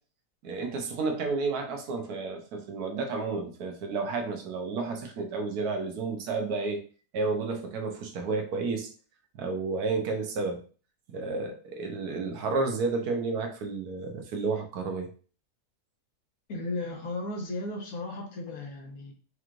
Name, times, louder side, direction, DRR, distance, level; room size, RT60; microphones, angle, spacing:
voice 1, 0.4-6.8 7.1-8.9 9.3-10.6 11.1-15.1, right 4 dB, 80° right, 4 dB, 1.3 m, -31 dB
voice 2, 16.5-19.1, left 2 dB, 70° left, 0 dB, 1.5 m, -35 dB
4.7 x 3.0 x 2.5 m, 0.39 s
omnidirectional pair, 1.6 m